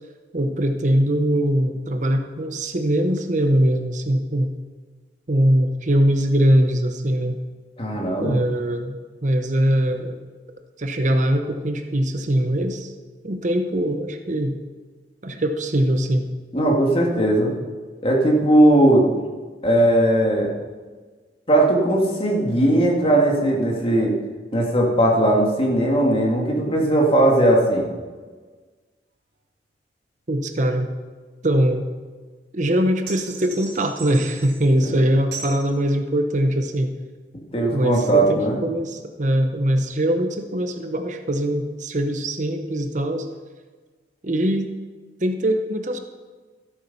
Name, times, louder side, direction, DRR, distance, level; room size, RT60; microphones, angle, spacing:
voice 1, 0.3-4.5 5.3-7.4 8.2-9.0 9.2-10.2 10.8-12.9 13.2-14.6 15.2-16.2 30.3-30.9 31.4-31.9 32.5-36.9 37.7-43.3 44.2-44.7 45.2-46.0, right 1 dB, 45° right, 6 dB, 0.9 m, -22 dB
voice 2, 7.8-8.5 16.5-17.5 18.0-19.1 19.6-20.5 21.5-24.1 24.5-27.9 34.8-34.9 37.5-38.6, right 1 dB, 35° left, -1 dB, 2.3 m, -18 dB
sound 1, 33.1-34.7 35.3-35.7, right 5 dB, 70° right, 3.1 m, -37 dB
13.5 x 8.5 x 5.6 m, 1.4 s
head